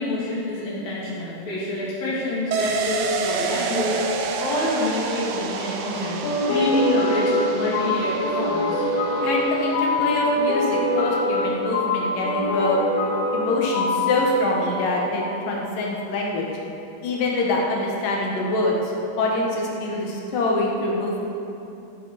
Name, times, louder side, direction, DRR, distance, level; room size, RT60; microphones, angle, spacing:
voice 1, 0.0-8.8, left 1 dB, 50° left, -8 dB, 4.2 m, -27 dB
sound 1, 2.5-11.9 12.2-12.3, right 5 dB, 85° right, 2.2 m, -30 dB
sound 2, 6.2-15.5, left 1 dB, 85° left, 4.1 m, -24 dB
voice 2, 9.2-12.8 13.3-16.5 17.0-21.2, left 2 dB, 65° left, -2 dB, 2.2 m, -25 dB
15.0 x 11.5 x 4.2 m, 2.8 s
omnidirectional pair, 5.8 m